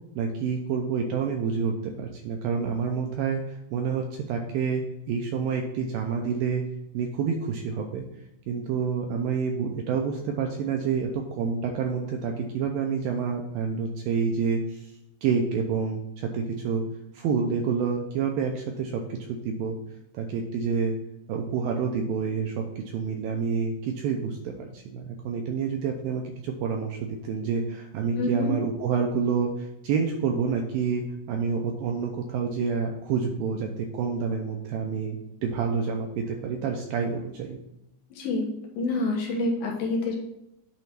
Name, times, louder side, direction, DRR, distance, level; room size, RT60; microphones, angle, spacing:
voice 1, 0.2-6.6 6.9-8.1 8.5-14.9 15.2-16.8 17.1-19.8 20.1-21.0 21.3-22.6 22.9-37.6, right 5 dB, 80° right, 2 dB, 2.1 m, -28 dB
voice 2, 28.2-28.5 38.1-38.5 38.7-40.2, left 2 dB, 70° left, -1 dB, 2.7 m, -27 dB
9.1 x 3.1 x 5.7 m, 0.87 s
omnidirectional pair, 4.7 m